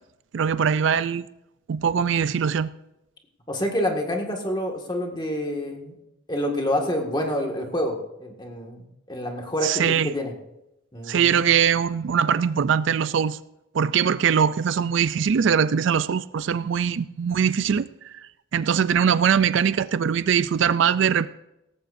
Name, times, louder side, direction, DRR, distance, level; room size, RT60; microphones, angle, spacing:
voice 1, 0.3-1.3 1.7-2.7 9.6-10.1 11.1-13.4 13.7-21.3, right 7 dB, 65° right, 15 dB, 0.4 m, -22 dB
voice 2, 3.5-5.9 6.3-8.8 9.1-10.3 10.9-11.4, left 1 dB, 20° left, 1 dB, 1.8 m, -27 dB
17.5 x 14.5 x 2.6 m, 0.89 s
head